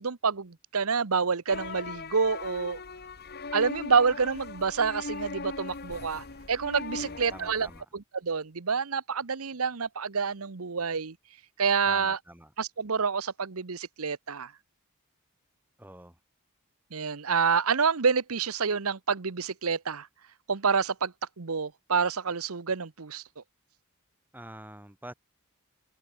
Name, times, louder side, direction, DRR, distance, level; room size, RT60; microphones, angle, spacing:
voice 1, 0.0-2.8 3.5-7.7 7.9-11.1 11.6-12.2 12.6-14.5 16.9-20.1 20.5-23.4, right 5 dB, 75° right, 1.0 m, -28 dB
sound 1, 1.5-7.8, left 4 dB, 45° left, 1.5 m, -39 dB
voice 2, 7.0-7.9 11.9-12.5 15.8-16.2 24.3-25.1, right 1 dB, 10° right, 3.5 m, -46 dB
open air
head